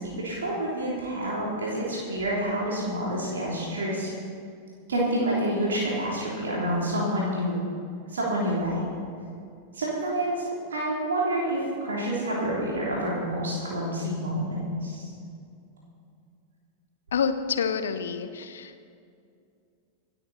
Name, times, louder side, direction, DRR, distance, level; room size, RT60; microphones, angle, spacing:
voice 1, 0.0-4.1 4.9-7.6 8.1-8.8 9.7-10.4 10.7-15.0, right 1 dB, 65° right, -5 dB, 3.3 m, -28 dB
voice 2, 17.1-18.8, left 6 dB, 65° left, 9 dB, 1.0 m, -28 dB
26.0 x 9.2 x 4.3 m, 2.4 s
figure-of-eight pair, 90°, 0 cm